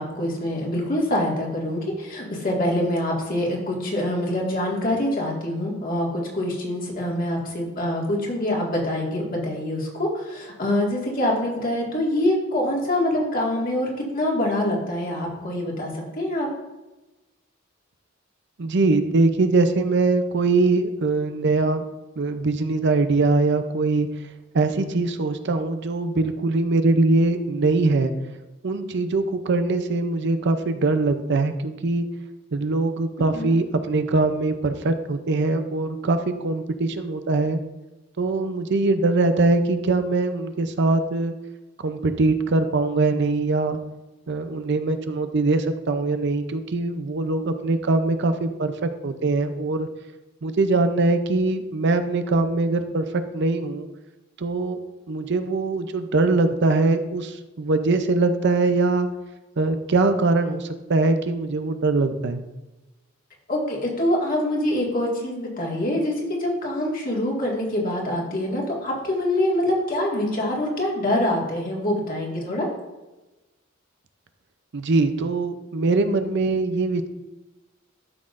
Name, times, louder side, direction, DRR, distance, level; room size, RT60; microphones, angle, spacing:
voice 1, 0.0-13.9 14.1-16.5 33.3-33.6 63.5-72.7, left 1 dB, 45° left, -2 dB, 2.0 m, -25 dB
voice 2, 18.6-21.9 22.2-24.1 24.5-28.1 28.6-32.1 32.5-37.6 38.2-41.3 41.8-43.8 44.3-49.9 50.4-53.9 54.4-54.8 55.1-59.1 59.6-62.4 74.7-77.1, right 3 dB, 60° right, 9 dB, 0.6 m, -22 dB
12.5 x 6.1 x 2.5 m, 1.1 s
head